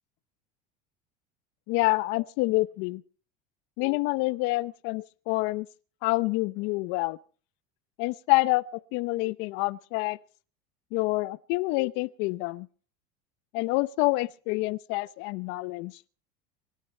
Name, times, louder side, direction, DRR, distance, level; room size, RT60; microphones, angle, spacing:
voice 1, 1.7-3.0 3.8-5.7 6.0-7.2 8.0-8.6 8.9-10.2 10.9-12.7 13.5-15.9, left 22 dB, 65° left, 0.8 m, -27 dB
24.0 x 12.5 x 4.4 m
supercardioid pair, 105°, 20 cm